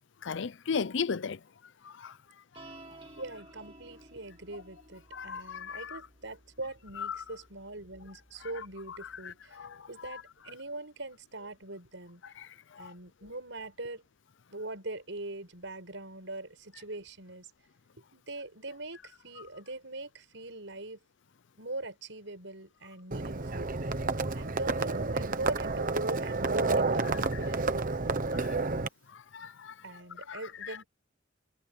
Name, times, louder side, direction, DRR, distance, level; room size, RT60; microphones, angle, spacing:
voice 1, 0.2-1.4 1.8-2.2 2.5-2.8 5.1-6.0 7.0-7.2 8.4-10.2 12.2-12.9 28.3-28.6 29.1-30.8, left 6 dB, 65° left, 0.6 m, -38 dB
sound 1, 2.5-9.2, right 2 dB, 30° right, 3.5 m, -55 dB
voice 2, 3.2-12.2 12.8-14.0 14.5-17.5 18.1-21.0 21.6-23.7 24.3-27.9 29.8-30.9, right 2 dB, 65° right, 7.0 m, -42 dB
Livestock farm animals working animals, 23.1-28.9, right 3 dB, 45° right, 1.1 m, -30 dB
head